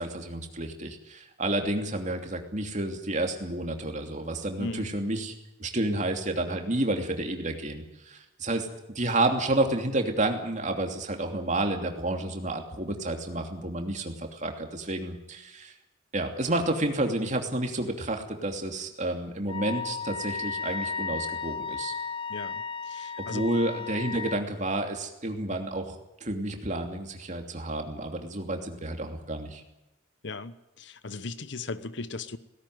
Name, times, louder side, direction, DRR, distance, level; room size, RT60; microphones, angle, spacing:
voice 1, 0.0-5.3 5.6-8.7 8.9-15.7 16.1-21.9 23.2-26.0 26.2-29.6, right 2 dB, 40° right, 4 dB, 2.9 m, -30 dB
voice 2, 4.6-4.9 22.3-23.5 30.2-32.4, left 3 dB, 60° left, 14 dB, 1.0 m, -37 dB
Wind instrument woodwind instrument, 19.5-24.4, left 5 dB, 25° left, 1.0 m, -34 dB
18.0 x 17.0 x 9.5 m, 0.94 s
head